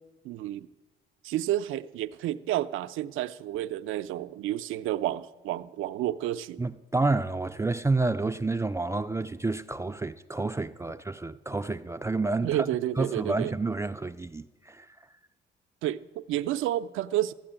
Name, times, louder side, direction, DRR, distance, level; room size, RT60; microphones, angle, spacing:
voice 1, 0.2-0.7 1.2-6.6 12.4-13.6 15.8-17.3, right 13 dB, 85° right, 0.5 m, -30 dB
voice 2, 6.6-12.7 13.0-14.9, right 3 dB, 15° right, 0.3 m, -29 dB
13.5 x 8.7 x 8.8 m
cardioid pair, 90°, 20 cm